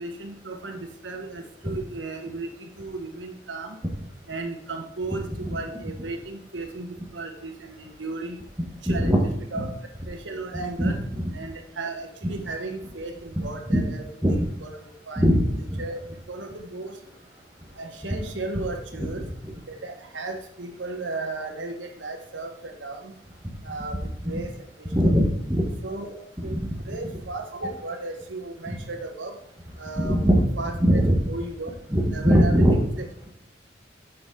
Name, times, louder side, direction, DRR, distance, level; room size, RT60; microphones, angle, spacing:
voice 1, 0.0-3.8 4.3-8.4 8.8-9.2 9.5-9.7 10.1-11.0 11.3-14.1 14.6-15.2 15.8-16.0 16.3-17.0 17.7-19.2 19.7-23.1 23.6-25.1 25.8-29.3 29.8-31.0 31.3-31.7 32.1-33.1, right 3 dB, 90° right, 4 dB, 1.3 m, -35 dB
voice 2, 8.9-9.2 9.5-9.6 10.8-11.3 12.2-12.3 13.7-13.8 14.2-14.5 15.2-15.4 15.7-15.8 23.9-24.0 24.9-25.6 26.4-26.8 28.7-28.8 30.0-30.4 30.8-31.2 31.9-32.8, equal, 15° right, -3 dB, 1.1 m, -21 dB
7.9 x 6.2 x 3.8 m, 0.73 s
head